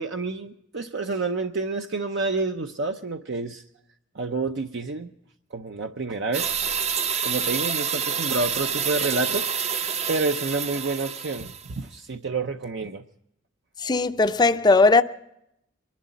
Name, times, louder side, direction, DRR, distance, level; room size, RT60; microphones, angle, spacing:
voice 1, 0.0-3.6 4.1-5.1 5.5-6.6 6.9-13.0, right 3 dB, 65° right, 0.7 m, -29 dB
sound 1, 6.3-11.7, right 7 dB, 35° right, 0.7 m, -28 dB
voice 2, 13.8-15.0, left 3 dB, 20° left, 0.5 m, -18 dB
24.5 x 11.5 x 4.1 m
head